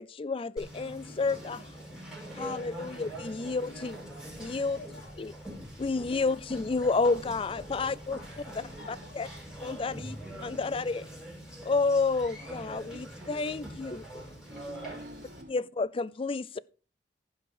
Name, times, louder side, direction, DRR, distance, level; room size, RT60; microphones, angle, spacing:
voice 1, 0.0-1.7 2.3-4.0 4.4-4.8 5.2-5.3 5.8-8.2 9.2-9.3 9.6-10.2 10.4-11.1 11.7-14.2 15.5-16.6, left 4 dB, 30° left, 0.4 m, -30 dB
Conversation, 0.6-15.4, right 1 dB, ahead, 4.7 m, -43 dB
voice 2, 1.9-2.9 4.3-5.1 6.1-6.4 7.7-9.5, left 2 dB, 85° left, 2.9 m, -54 dB
voice 3, 14.1-15.5, right 1 dB, 50° right, 1.3 m, -49 dB
15.5 x 5.7 x 4.7 m
head